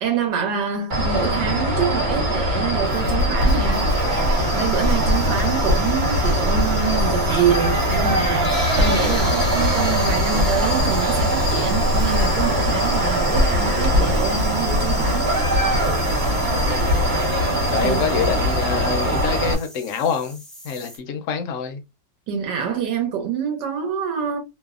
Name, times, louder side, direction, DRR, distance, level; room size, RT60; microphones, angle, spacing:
voice 1, 0.0-15.3 17.8-18.0 22.3-24.4, right 7 dB, 85° right, 1.3 m, -26 dB
sound 1, 0.9-19.5, equal, 35° right, 0.9 m, -22 dB
Writing, 2.1-17.5, left 1 dB, 65° right, 0.8 m, -26 dB
sound 2, 3.3-21.0, equal, ahead, 0.5 m, -37 dB
voice 2, 16.5-16.9 17.7-20.4 20.6-21.8, left 6 dB, 65° left, 0.8 m, -26 dB
3.2 x 2.0 x 2.3 m
omnidirectional pair, 1.9 m